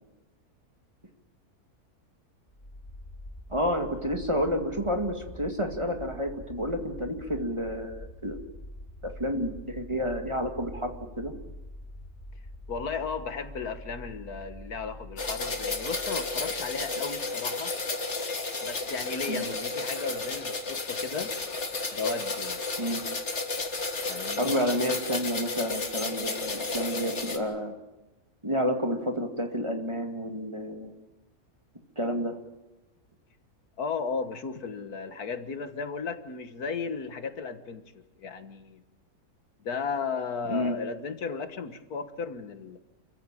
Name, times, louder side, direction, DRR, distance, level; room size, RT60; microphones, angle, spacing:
sound 1, 2.5-17.3, left 1 dB, 30° left, 4.9 m, -45 dB
voice 1, 3.5-8.4 9.0-11.3 19.3-19.4 22.8-23.0 24.4-27.8 28.4-30.9 32.0-32.4 40.5-40.8, equal, 20° right, 4 dB, 2.2 m, -30 dB
voice 2, 12.7-17.7 18.6-21.3 21.9-22.6 24.1-24.6 33.8-37.8 38.2-38.8 39.6-42.8, left 5 dB, 75° left, 9 dB, 1.9 m, -35 dB
sound 2, 15.2-27.4, left 3 dB, 50° left, 2.2 m, -32 dB
27.5 x 15.5 x 9.0 m, 1.1 s
omnidirectional pair, 1.6 m